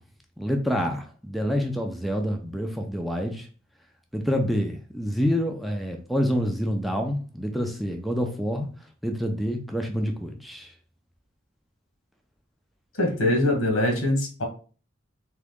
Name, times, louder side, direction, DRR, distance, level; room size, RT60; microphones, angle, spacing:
voice 1, 0.4-3.5 4.1-8.7 9.0-10.7, equal, ahead, 2 dB, 0.4 m, -27 dB
voice 2, 13.0-14.4, left 1 dB, 90° left, 1 dB, 1.4 m, -23 dB
3.7 x 3.0 x 3.5 m, 0.38 s
head